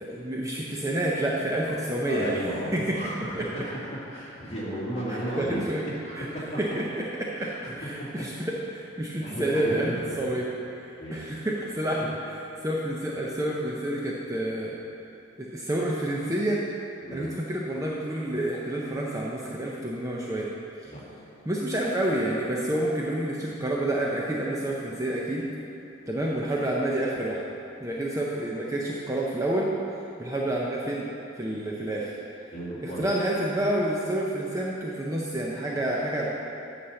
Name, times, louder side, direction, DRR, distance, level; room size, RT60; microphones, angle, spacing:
voice 1, 0.0-2.4 2.7-3.0 3.4-3.5 5.1-5.8 6.2-6.3 6.6-7.5 7.8-10.5 10.8-14.8 15.4-16.6 17.1-20.5 20.8-20.9 21.5-25.5 26.1-27.4 27.8-29.7 30.2-31.1 31.3-32.1 32.8-36.3, right 1 dB, 15° right, -4 dB, 0.6 m, -29 dB
voice 2, 2.1-6.5 7.4-8.2 9.2-9.9 11.0-11.3 17.0-17.3 20.8-21.0 32.5-33.1, right 1 dB, 30° left, -8 dB, 2.2 m, -34 dB
9.6 x 4.2 x 6.9 m, 2.8 s
head